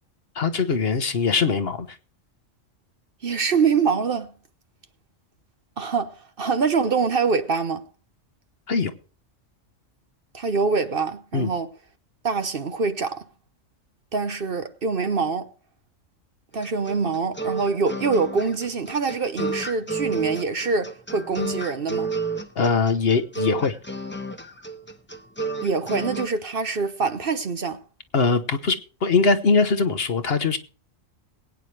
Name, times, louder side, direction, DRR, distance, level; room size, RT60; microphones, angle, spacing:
voice 1, 0.3-2.0 8.7-8.9 11.3-11.5 22.6-23.8 28.1-30.6, left 4 dB, 50° left, 1.1 m, -22 dB
voice 2, 3.2-4.3 5.8-7.8 10.3-11.7 12.2-13.2 14.1-15.5 16.5-22.1 25.6-27.8, right 5 dB, 50° right, 1.0 m, -24 dB
sound 1, 16.6-26.3, right 3 dB, 10° left, 0.9 m, -31 dB
22.0 x 9.2 x 3.3 m
omnidirectional pair, 1.3 m